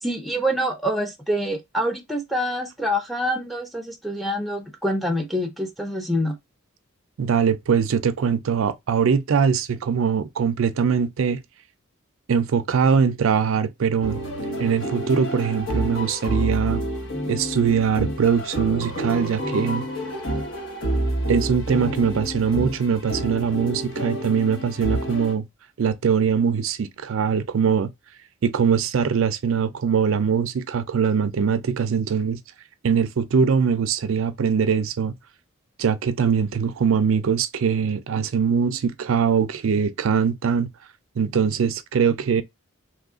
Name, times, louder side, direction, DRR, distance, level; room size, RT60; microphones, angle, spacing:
voice 1, 0.0-6.3, equal, ahead, 0.5 m, -26 dB
voice 2, 7.2-11.4 12.3-14.2 14.6-16.8 17.3-19.9 21.3-25.4 25.8-27.9 28.4-32.4 32.8-35.1 35.8-40.7 41.2-42.4, right 6 dB, 65° right, 0.4 m, -22 dB
sound 1, 14.0-25.3, right 1 dB, 60° left, 1.0 m, -29 dB
3.0 x 2.4 x 3.6 m
head